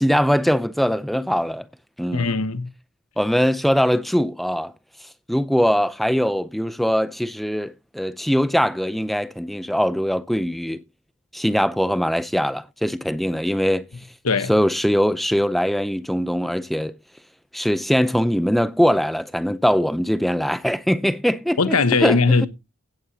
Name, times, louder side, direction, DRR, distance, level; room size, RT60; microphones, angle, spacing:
voice 1, 0.0-1.6 2.0-2.3 3.2-4.7 5.3-10.8 11.3-13.9 14.5-16.9 17.5-22.5, equal, ahead, 0.5 m, -21 dB
voice 2, 2.1-2.7 14.2-14.5 21.6-22.5, left 4 dB, 80° left, 1.1 m, -19 dB
16.5 x 8.2 x 2.8 m
head